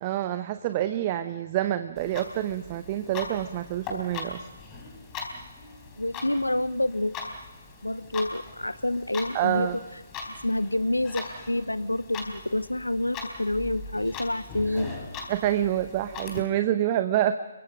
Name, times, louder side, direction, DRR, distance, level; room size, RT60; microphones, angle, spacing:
voice 1, 0.0-4.5 9.3-9.8 15.3-17.4, right 12 dB, 30° right, 10 dB, 0.8 m, -27 dB
Clock, 2.0-16.4, left 4 dB, 20° left, 3.9 m, -40 dB
voice 2, 6.0-7.1 7.8-9.7 10.4-14.9, left 1 dB, 80° left, 16 dB, 0.9 m, -28 dB
30.0 x 23.5 x 5.2 m, 1.3 s
figure-of-eight pair, 140°, 0 cm